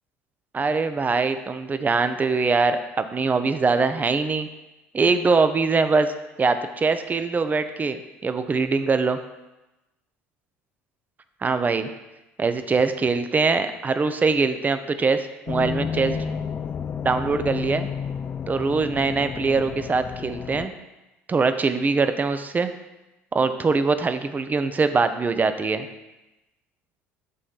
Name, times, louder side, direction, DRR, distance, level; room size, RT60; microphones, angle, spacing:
voice 1, 0.5-4.5 4.9-6.1 6.4-9.2 11.4-11.9 12.4-16.2 17.0-17.9 18.5-20.7 21.3-22.7 23.3-25.9, right 4 dB, 25° right, 10 dB, 0.6 m, -22 dB
sound 1, 15.5-20.7, left 7 dB, 30° left, 0.3 m, -31 dB
7.5 x 3.2 x 5.6 m, 1.0 s
hypercardioid pair, 65°, 7 cm